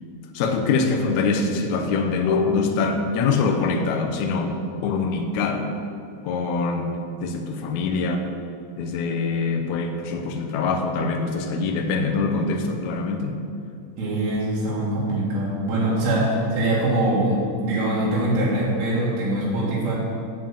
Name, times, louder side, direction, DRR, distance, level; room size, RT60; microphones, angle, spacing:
voice 1, 0.3-5.7 6.2-8.3 8.8-13.4, left 4 dB, 75° left, 4 dB, 1.8 m, -24 dB
voice 2, 14.0-20.0, right 1 dB, 80° right, -7 dB, 3.8 m, -23 dB
7.5 x 7.5 x 7.2 m, 2.6 s
omnidirectional pair, 4.2 m